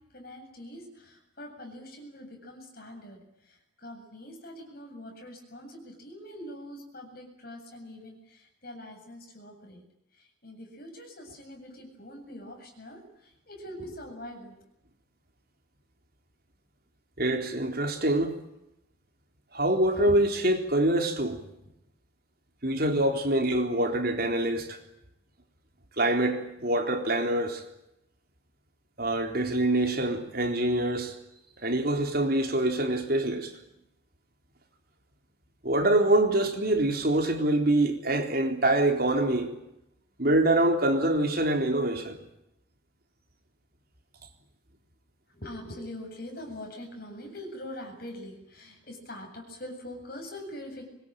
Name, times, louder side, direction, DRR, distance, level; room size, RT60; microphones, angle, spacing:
voice 1, 0.0-9.8 10.1-14.6 45.3-50.9, left 1 dB, 50° left, 7.9 m, -43 dB
voice 2, 17.2-18.3 19.5-21.4 22.6-24.8 26.0-27.6 29.0-31.1 31.6-33.5 35.6-39.5 40.2-42.2, right 1 dB, 50° right, 3.7 m, -25 dB
24.5 x 21.5 x 9.0 m
head